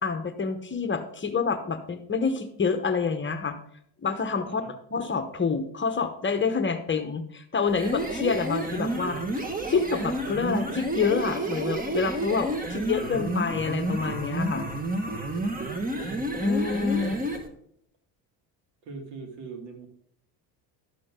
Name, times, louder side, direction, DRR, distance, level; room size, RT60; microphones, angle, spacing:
voice 1, 0.0-3.6 4.0-4.6 4.9-9.2 9.7-14.7 16.4-17.1, left 5 dB, 25° left, 9 dB, 1.1 m, -27 dB
sound 1, 7.7-17.5, right 2 dB, 20° right, 1.6 m, -30 dB
voice 2, 15.5-16.9 18.8-19.9, right 4 dB, 75° right, 2 dB, 2.6 m, -43 dB
12.5 x 7.6 x 3.7 m, 0.67 s
supercardioid pair, 95°, 45 cm